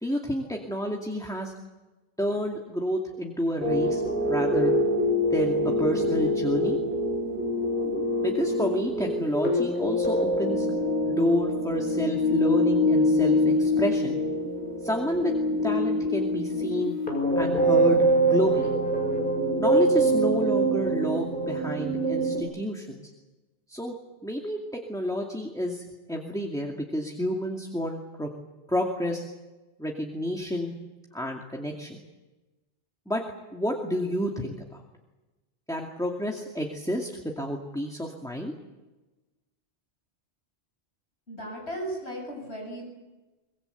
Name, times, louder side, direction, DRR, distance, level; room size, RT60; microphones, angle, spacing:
voice 1, 0.0-1.5 2.2-4.7 5.3-6.8 8.2-10.7 11.0-14.2 14.8-15.3 15.6-16.9 17.4-18.7 19.6-23.1 23.7-23.9 24.2-28.3 28.7-29.2 29.8-30.7 31.1-32.0 33.1-33.2 33.5-34.8 35.7-38.5, equal, 5° left, 1 dB, 2.4 m, -30 dB
sound 1, 3.6-22.4, equal, 50° left, 6.1 m, -25 dB
voice 2, 41.3-42.8, right 1 dB, 75° left, 1 dB, 7.6 m, -36 dB
24.0 x 22.0 x 8.1 m, 1.1 s
omnidirectional pair, 1.1 m